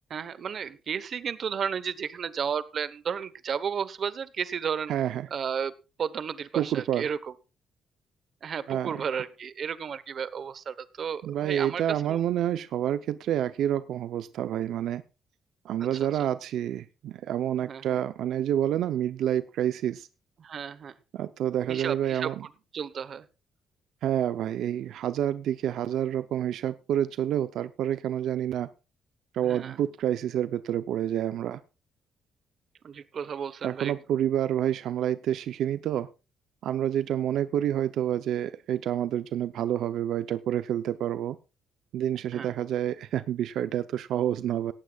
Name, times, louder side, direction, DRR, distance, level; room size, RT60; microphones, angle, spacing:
voice 1, 0.1-4.9 5.3-5.7 6.0-7.3 8.4-12.2 17.6-18.0 20.4-20.9 21.7-22.3 22.7-23.3 29.4-29.8 32.8-33.9 42.3-42.5, right 7 dB, 45° right, 16 dB, 1.0 m, -33 dB
voice 2, 4.9-5.3 6.6-7.1 8.7-8.9 11.2-15.0 15.6-20.1 21.1-22.4 24.0-28.7 29.3-31.6 33.6-36.1 36.6-41.4 41.9-44.7, right 11 dB, 75° right, 12 dB, 0.6 m, -28 dB
17.5 x 15.0 x 2.4 m, 0.30 s
cardioid pair, 150°, 0 cm